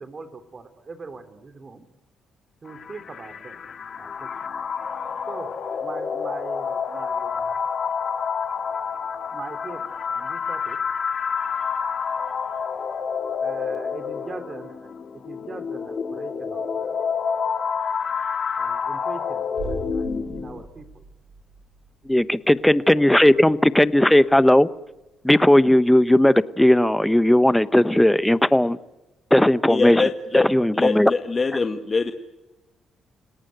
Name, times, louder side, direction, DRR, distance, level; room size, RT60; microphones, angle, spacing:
voice 1, 0.0-1.8 2.6-3.6 4.0-4.3 5.3-5.5 5.8-7.7 9.3-10.8 13.4-17.0 18.6-21.0 22.9-23.2, right 4 dB, 35° right, 10 dB, 3.0 m, -41 dB
sound 1, 2.7-20.6, left 6 dB, 50° left, 2.3 m, -28 dB
sound 2, 19.6-25.3 25.6-25.7, right 4 dB, 85° right, 7.8 m, -42 dB
voice 2, 22.1-24.7 25.2-28.8 29.3-30.1 30.3-31.1, left 1 dB, 5° left, 16 dB, 1.0 m, -17 dB
voice 3, 29.7-30.4 30.7-32.1, left 4 dB, 30° left, 7 dB, 1.6 m, -23 dB
29.0 x 18.0 x 9.3 m, 1.0 s
cardioid pair, 90°, 0 cm